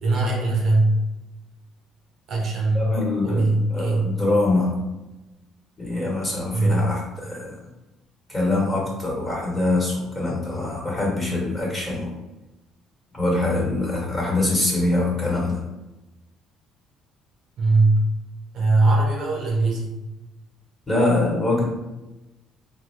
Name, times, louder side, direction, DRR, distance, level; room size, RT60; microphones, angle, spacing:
voice 1, 0.0-1.0 2.3-2.9 3.2-4.1 6.5-6.9 17.6-18.0 18.5-20.0, right 2 dB, 55° right, -2 dB, 1.0 m, -20 dB
voice 2, 2.7-4.8 5.8-7.5 8.3-12.1 13.1-15.6 20.9-21.6, left 2 dB, 20° left, -3 dB, 1.5 m, -24 dB
3.6 x 2.4 x 3.3 m, 1.0 s
cardioid pair, 105°, 0 cm